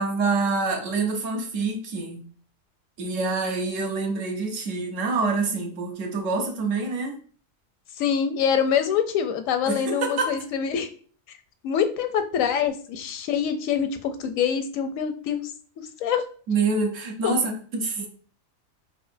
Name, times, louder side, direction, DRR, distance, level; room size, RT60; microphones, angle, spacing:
voice 1, 0.0-2.2 3.0-7.2 9.7-10.3 16.5-18.1, right 3 dB, 70° right, 2 dB, 1.2 m, -26 dB
voice 2, 8.0-10.9 11.6-16.2 17.2-17.3, left 7 dB, 85° left, 8 dB, 1.0 m, -25 dB
4.8 x 2.6 x 2.5 m, 0.43 s
omnidirectional pair, 1.4 m